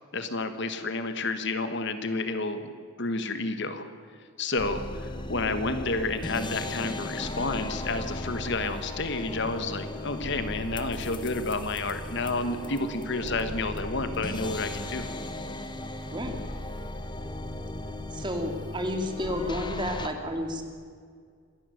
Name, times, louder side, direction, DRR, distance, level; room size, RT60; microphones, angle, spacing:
voice 1, 0.1-2.7 3.0-3.9 4.4-15.1, left 3 dB, 55° left, 9 dB, 1.5 m, -30 dB
sound 1, 4.6-20.1, left 1 dB, 20° left, 1.1 m, -36 dB
voice 2, 18.1-20.6, left 1 dB, 20° right, 5 dB, 2.3 m, -31 dB
27.0 x 12.0 x 9.2 m, 2.1 s
head